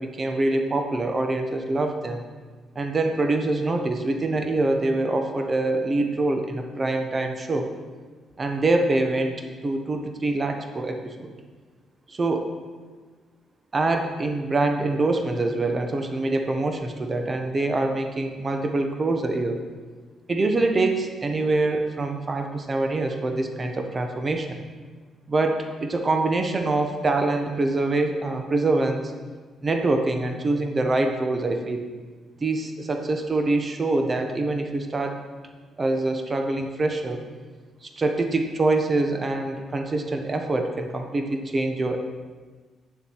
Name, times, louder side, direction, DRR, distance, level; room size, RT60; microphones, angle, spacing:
voice 1, 0.0-2.2 2.7-7.7 8.4-9.4 9.6-11.3 12.1-12.5 13.7-19.6 20.3-24.6 25.3-29.1 29.6-31.9 32.4-35.2 35.8-37.2 37.8-42.0, right 2 dB, 30° right, 5 dB, 1.0 m, -25 dB
9.4 x 7.1 x 4.7 m, 1.4 s
cardioid pair, 90°, 0 cm